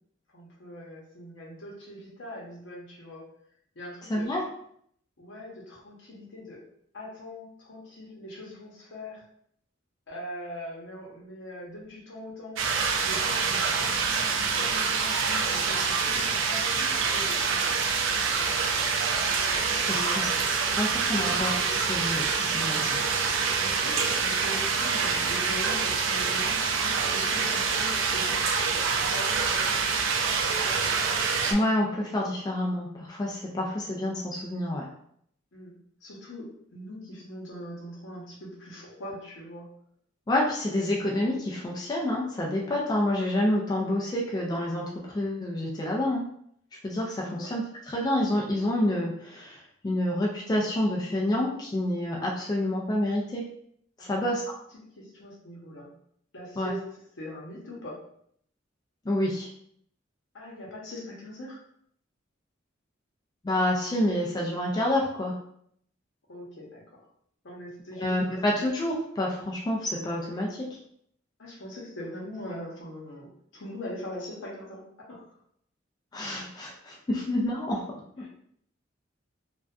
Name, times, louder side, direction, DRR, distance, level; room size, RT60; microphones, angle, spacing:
voice 1, 0.3-3.2 3.7-4.3 5.2-6.6 6.9-9.2 10.1-12.8 13.0-17.4 19.9-20.5 21.1-21.4 23.6-28.4 29.0-29.6 30.1-30.9 35.5-35.7 36.0-39.7 47.2-47.5 54.0-54.2 54.7-55.9 56.3-56.8 57.1-58.0 60.3-61.6 66.3-67.0 67.4-68.7 71.4-74.8 75.1-75.3 78.2-78.3, left 1 dB, 75° left, -3 dB, 0.8 m, -41 dB
voice 2, 4.1-4.4 19.7-20.3 20.7-23.0 31.5-34.8 40.3-44.9 45.1-46.2 46.8-49.6 49.8-53.4 54.0-54.4 56.6-56.7 59.1-59.5 63.4-65.3 68.0-70.7 76.1-77.8, left 1 dB, 20° left, -2 dB, 0.3 m, -28 dB
sound 1, 12.6-31.5, right 5 dB, 80° right, 0.3 m, -26 dB
2.5 x 2.2 x 2.2 m, 0.68 s
head